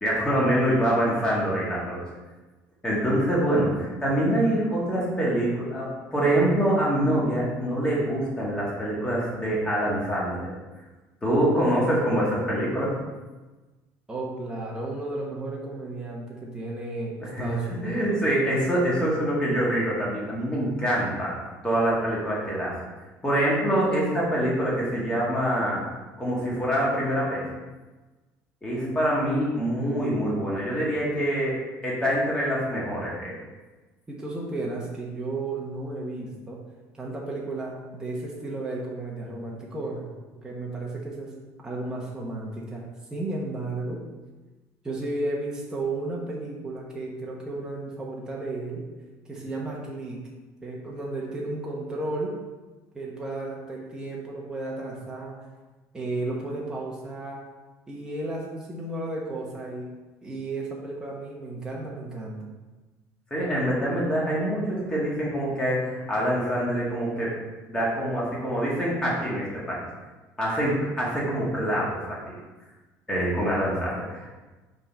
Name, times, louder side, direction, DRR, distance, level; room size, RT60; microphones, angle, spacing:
voice 1, 0.0-2.0 2.8-10.5 11.2-13.0 17.3-17.5 17.8-21.3 21.6-22.8 23.2-25.8 26.2-27.4 28.6-31.6 31.8-33.3 63.3-67.3 67.7-69.8 70.4-72.4 73.1-74.4, right 1 dB, 10° left, -6 dB, 1.8 m, -25 dB
voice 2, 14.1-18.2 28.7-29.0 34.1-36.6 36.9-40.1 40.3-41.3 41.6-44.0 44.8-48.8 49.2-50.2 50.6-52.3 52.9-55.4 55.9-57.4 57.9-62.5, right 2 dB, 10° right, -4 dB, 1.0 m, -33 dB
5.3 x 3.8 x 5.5 m, 1.2 s
cardioid pair, 165°, 7 cm